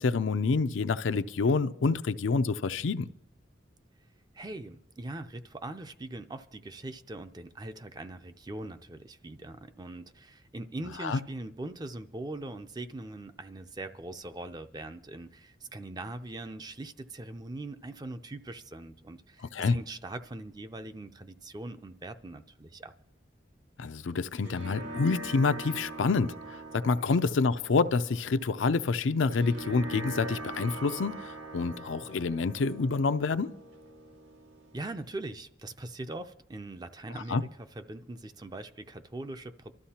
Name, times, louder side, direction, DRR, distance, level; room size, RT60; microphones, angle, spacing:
voice 1, 0.0-3.1 11.0-11.2 19.5-19.8 23.8-26.3 26.7-31.2 31.5-33.5 37.3-37.4, left 4 dB, 90° left, 0.5 m, -27 dB
voice 2, 4.3-22.9 34.7-39.7, right 2 dB, 20° right, 0.4 m, -41 dB
sound 1, 24.1-35.1, right 2 dB, 90° right, 1.9 m, -43 dB
24.0 x 13.0 x 2.9 m
head